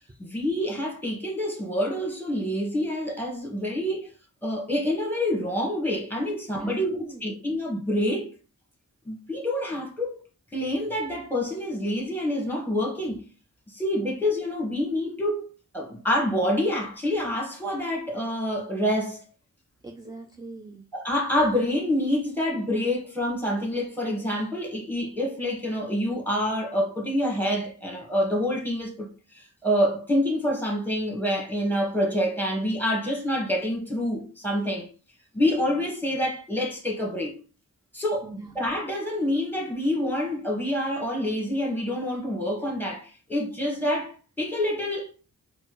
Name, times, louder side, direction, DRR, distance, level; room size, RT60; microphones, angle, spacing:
voice 1, 0.2-4.1 4.4-8.3 9.1-10.2 10.5-13.2 13.7-19.2 20.9-34.9 35.3-37.4 37.9-45.1, left 1 dB, 5° left, 1.3 m, -27 dB
voice 2, 6.6-7.3 19.8-20.8 38.2-38.6, right 2 dB, 10° right, 0.4 m, -41 dB
4.2 x 2.2 x 3.0 m
cardioid pair, 60°, 35 cm